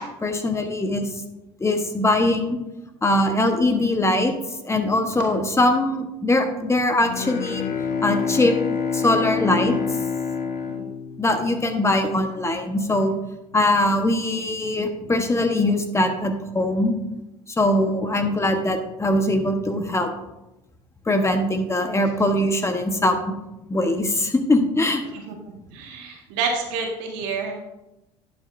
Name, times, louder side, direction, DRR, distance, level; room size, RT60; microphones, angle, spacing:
voice 1, 0.2-1.1 1.6-2.6 3.0-4.3 4.6-7.6 8.0-8.6 8.9-9.8 11.2-13.1 13.5-17.0 17.6-20.1 21.1-23.2 23.7-25.0, left 1 dB, 20° left, 6 dB, 1.2 m, -21 dB
Bowed string instrument, 7.0-11.9, left 6 dB, 55° left, 1.1 m, -27 dB
voice 2, 10.6-11.0 25.3-27.6, right 4 dB, 75° right, 1 dB, 1.9 m, -29 dB
11.0 x 7.8 x 2.7 m, 0.94 s
hypercardioid pair, 75°, 16 cm